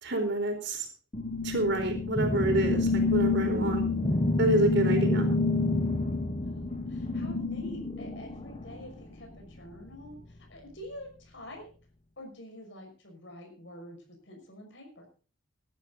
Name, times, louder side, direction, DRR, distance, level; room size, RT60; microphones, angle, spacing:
voice 1, 0.0-0.9 1.4-3.8 4.4-5.3, right 1 dB, 60° right, 4 dB, 4.2 m, -28 dB
sound 1, 1.1-8.9, left 2 dB, 30° left, 1.2 m, -28 dB
voice 2, 6.4-10.2 10.5-11.7 12.2-14.0 14.3-15.1, left 1 dB, 60° left, 3 dB, 6.0 m, -46 dB
18.0 x 11.5 x 4.0 m, 0.36 s
head